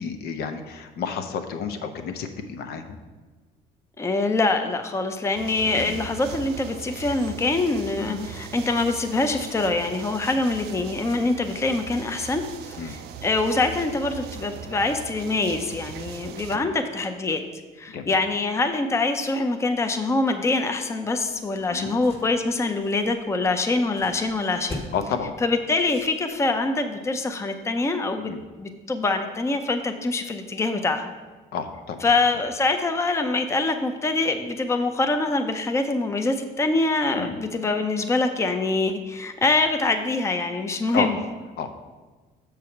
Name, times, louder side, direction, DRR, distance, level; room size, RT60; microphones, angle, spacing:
voice 1, 0.0-3.0 5.7-6.0 8.0-8.3 12.8-13.0 16.5-16.7 17.9-18.1 21.7-22.0 24.9-25.4 28.3-28.4 31.5-32.1 37.2-37.4 40.9-41.1 41.6-41.7, left 6 dB, 70° left, 6 dB, 0.8 m, -31 dB
voice 2, 4.0-17.4 17.8-24.8 25.4-28.3 28.6-31.1 32.0-41.2, left 3 dB, 15° left, 6 dB, 0.6 m, -24 dB
sound 1, 5.3-16.6, right 8 dB, 75° right, 0.5 m, -39 dB
sound 2, 21.2-26.6, left 1 dB, 35° left, 1.5 m, -42 dB
7.0 x 4.8 x 5.8 m, 1.3 s
cardioid pair, 110°, 17 cm